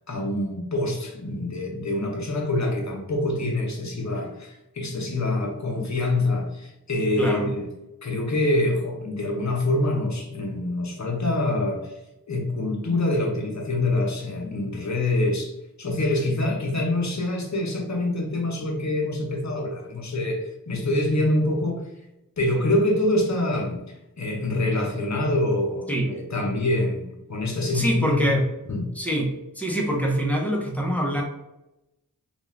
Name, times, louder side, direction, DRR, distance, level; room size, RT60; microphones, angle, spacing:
voice 1, 0.1-7.7 8.0-11.9 12.3-21.8 22.4-28.4 28.7-28.9, left 1 dB, 50° left, 1 dB, 0.7 m, -25 dB
voice 2, 7.2-7.5 25.9-26.1 27.7-28.4 29.0-29.3 29.6-31.2, right 1 dB, 5° left, 0 dB, 0.6 m, -24 dB
2.4 x 2.3 x 3.1 m, 0.90 s
wide cardioid pair, 50°, 36 cm